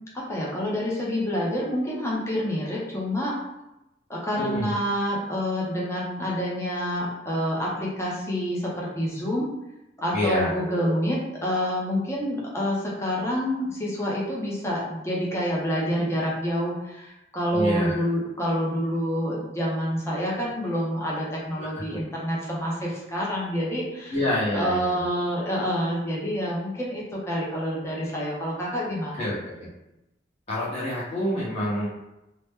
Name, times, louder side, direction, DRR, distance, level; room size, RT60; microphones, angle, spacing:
voice 1, 0.1-3.4 4.1-9.5 10.0-24.2 24.5-29.3, equal, 15° left, -5 dB, 0.7 m, -27 dB
voice 2, 4.4-4.7 10.1-11.0 17.5-18.0 21.6-22.0 24.1-25.1 29.1-29.7 30.5-31.9, left 1 dB, 35° left, -8 dB, 1.1 m, -28 dB
2.8 x 2.1 x 3.5 m, 0.93 s
head